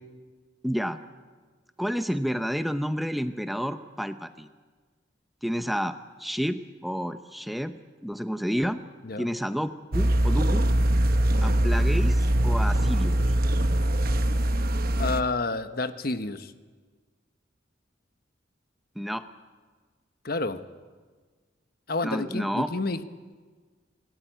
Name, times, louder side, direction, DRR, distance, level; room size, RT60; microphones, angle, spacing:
voice 1, 0.6-1.0 1.8-4.5 5.4-7.7 8.0-8.8 9.2-10.7 11.4-13.2 19.0-19.3 22.0-22.7, equal, ahead, 9 dB, 0.7 m, -30 dB
sound 1, 9.9-15.2, right 1 dB, 50° right, 1.0 m, -22 dB
voice 2, 15.0-16.5 20.2-20.7 21.9-23.0, left 3 dB, 55° left, 10 dB, 1.1 m, -29 dB
25.5 x 19.5 x 9.2 m, 1.5 s
head